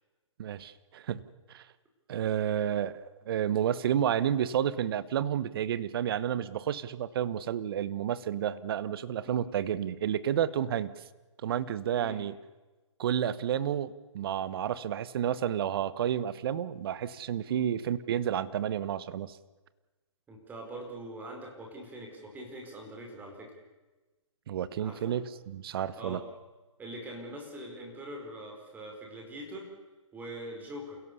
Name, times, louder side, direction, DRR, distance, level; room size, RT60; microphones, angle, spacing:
voice 1, 0.4-1.2 1.5-1.6 2.1-3.0 3.3-10.9 11.4-12.3 13.0-19.4 24.5-26.2, right 10 dB, 45° right, 16 dB, 1.2 m, -30 dB
voice 2, 11.9-12.3 17.4-17.6 20.3-23.5 24.8-25.2 26.0-26.2 26.8-29.7 30.1-31.0, right 1 dB, 10° right, 1 dB, 4.8 m, -43 dB
28.5 x 17.0 x 6.9 m, 1.2 s
hypercardioid pair, 145°, 17 cm